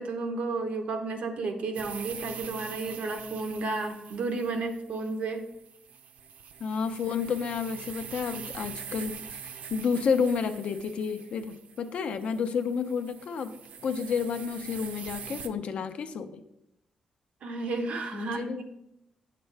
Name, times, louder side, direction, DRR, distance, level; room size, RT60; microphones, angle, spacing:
voice 1, 0.0-5.4 17.4-18.6, right 3 dB, 65° right, 5 dB, 1.0 m, -32 dB
sound 1, 1.7-15.5, right 7 dB, 85° right, 0.6 m, -44 dB
voice 2, 6.6-13.5 13.8-16.4 18.1-18.6, left 6 dB, 60° left, 9 dB, 0.6 m, -30 dB
8.9 x 6.7 x 3.4 m, 0.81 s
wide cardioid pair, 170°, 2 cm